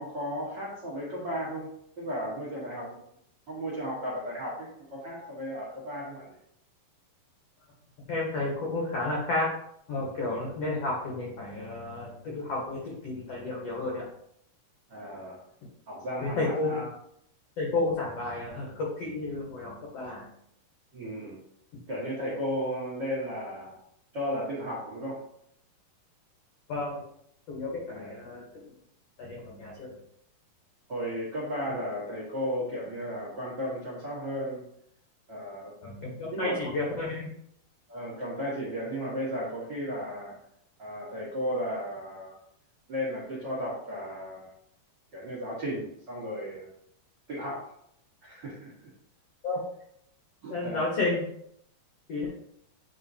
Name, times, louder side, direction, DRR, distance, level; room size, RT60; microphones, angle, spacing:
voice 1, 0.0-1.7 2.0-3.0 3.5-6.3 14.9-15.4 15.9-16.9 20.9-21.4 21.9-23.8 24.1-25.2 27.9-28.1 30.9-34.6 35.3-35.7 36.3-36.7 37.9-40.3 40.8-42.4 42.9-44.5 45.1-46.7 47.3-47.7 48.2-48.9 50.4-50.9, equal, 75° right, -7 dB, 1.0 m, -34 dB
voice 2, 8.1-9.5 9.9-14.0 16.4-16.8 17.6-20.2 26.7-27.0 27.5-28.4 29.3-29.9 35.8-37.3 49.4-49.6 50.5-51.2 52.1-52.3, left 2 dB, 85° left, -3 dB, 1.4 m, -31 dB
9.6 x 3.7 x 2.7 m, 0.72 s
omnidirectional pair, 4.7 m